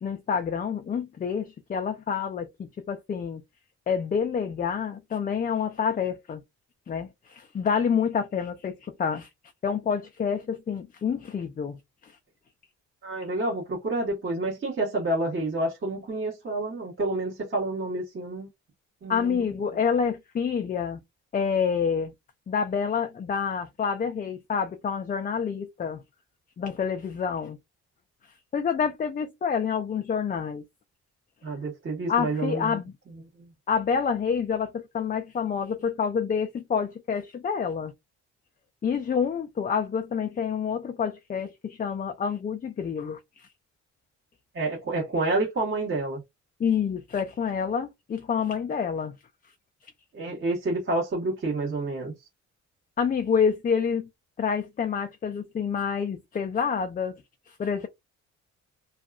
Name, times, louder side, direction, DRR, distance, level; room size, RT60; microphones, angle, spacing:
voice 1, 0.0-3.4 3.9-6.4 6.9-9.3 9.6-12.1 19.1-21.0 21.3-22.1 22.5-26.0 26.6-27.6 28.5-30.6 32.1-32.9 33.7-37.9 38.8-43.5 46.6-49.1 53.0-54.1 54.4-57.1 57.5-57.9, left 6 dB, 30° left, 0.4 m, -28 dB
voice 2, 13.0-18.5 19.0-19.4 31.4-32.8 33.4-33.5 44.5-46.2 50.1-52.1, right 2 dB, 40° right, 1.3 m, -29 dB
2.7 x 2.4 x 2.3 m
cardioid pair, 90°, 30 cm